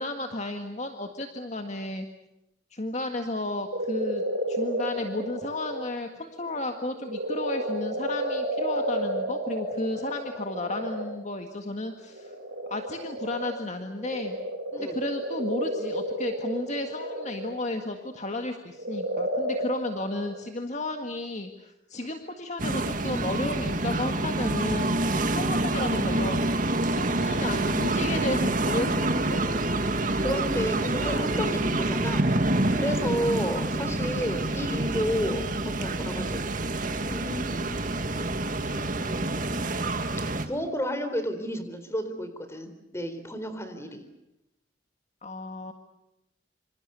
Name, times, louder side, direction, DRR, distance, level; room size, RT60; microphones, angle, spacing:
voice 1, 0.0-2.1 2.7-12.3 12.7-14.4 14.7-26.5 26.9-29.4 43.8-44.0 45.2-45.7, left 2 dB, 40° left, 5 dB, 1.8 m, -33 dB
sound 1, 3.7-5.8 6.3-11.2 12.0-18.2 18.7-20.3, right 1 dB, 70° right, 7.0 m, -31 dB
sound 2, 22.6-40.5, right 2 dB, 45° right, 2.1 m, -27 dB
voice 2, 30.2-32.3 32.7-35.4 35.8-36.4 37.0-37.8 40.2-44.0, equal, 15° left, 9 dB, 3.8 m, -31 dB
27.0 x 27.0 x 7.0 m, 0.89 s
head